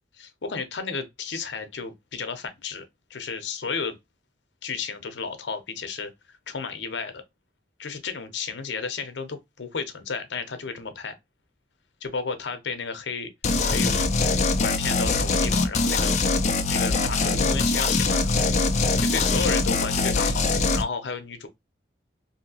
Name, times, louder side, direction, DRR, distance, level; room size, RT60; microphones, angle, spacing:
voice 1, 0.2-2.8 3.1-4.0 4.6-6.1 6.5-7.2 7.8-11.1 12.0-13.3 13.7-14.0 14.6-16.2 16.7-18.4 19.0-20.5 20.7-21.5, left 5 dB, 85° left, 0.7 m, -32 dB
sound 1, 13.4-20.8, left 3 dB, 40° left, 0.4 m, -23 dB
2.8 x 2.7 x 2.6 m
head